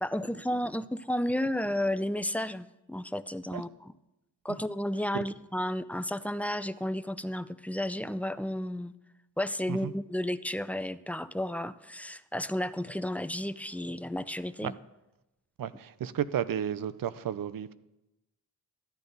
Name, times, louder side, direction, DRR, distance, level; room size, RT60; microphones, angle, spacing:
voice 1, 0.0-3.9 4.4-8.9 9.4-14.7, left 1 dB, 5° left, 0.4 m, -32 dB
voice 2, 15.6-17.7, right 9 dB, 60° right, 0.7 m, -33 dB
13.0 x 9.6 x 4.0 m
cardioid pair, 65°, 38 cm